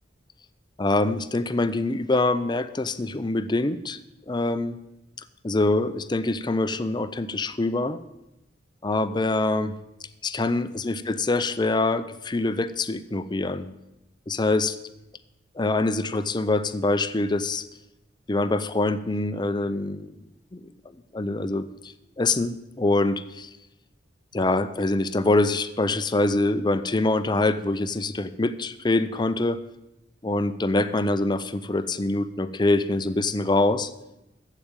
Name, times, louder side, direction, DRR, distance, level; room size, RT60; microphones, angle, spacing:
voice 1, 0.8-4.0 4.3-4.8 5.4-8.0 8.8-9.7 10.2-13.7 14.3-14.8 15.6-17.7 18.3-20.1 20.5-20.7 21.1-23.5 24.3-29.6 30.2-33.9, left 2 dB, 25° left, 12 dB, 0.5 m, -24 dB
14.5 x 5.0 x 9.0 m, 0.91 s
head